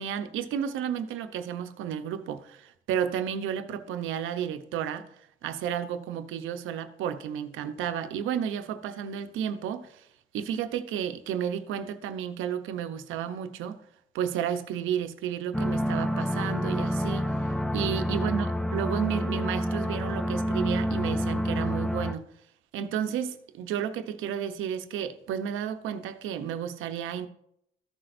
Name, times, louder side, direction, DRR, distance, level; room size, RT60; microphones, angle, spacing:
voice 1, 0.0-5.1 5.4-10.1 10.3-13.8 14.1-17.3 17.7-22.2 22.7-27.3, right 9 dB, 90° right, 0.7 m, -32 dB
sound 1, 15.5-22.1, equal, 5° left, 0.5 m, -28 dB
14.0 x 5.9 x 2.6 m
cardioid pair, 90°, 20 cm